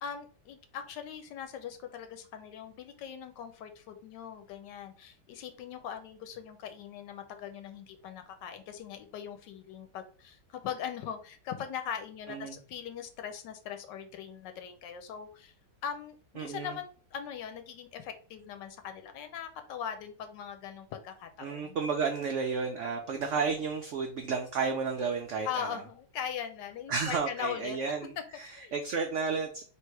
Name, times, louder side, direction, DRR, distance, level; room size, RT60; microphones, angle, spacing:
voice 1, 0.0-15.5 15.8-21.8 25.4-27.8 28.5-28.7, left 8 dB, 85° left, 7 dB, 1.3 m, -40 dB
voice 2, 12.3-12.6 16.4-16.7 21.4-25.7 26.9-29.6, right 5 dB, 85° right, 4 dB, 0.6 m, -32 dB
3.4 x 2.8 x 4.5 m, 0.40 s
omnidirectional pair, 1.9 m